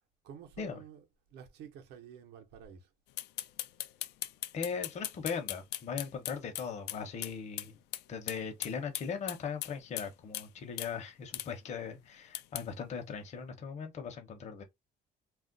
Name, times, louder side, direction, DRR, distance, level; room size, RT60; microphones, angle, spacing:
voice 1, 0.2-2.9, right 8 dB, 80° right, 0.7 m, -51 dB
sound 1, 3.2-7.3 7.6-7.7 7.9-8.0 8.3-10.1 10.3-10.5 10.8-10.9 11.3-11.5 12.3-12.6, left 14 dB, 85° left, 0.4 m, -38 dB
voice 2, 4.5-7.8 8.1-14.6, left 6 dB, 40° left, 0.8 m, -39 dB
2.4 x 2.1 x 3.8 m
cardioid pair, 110°, 17 cm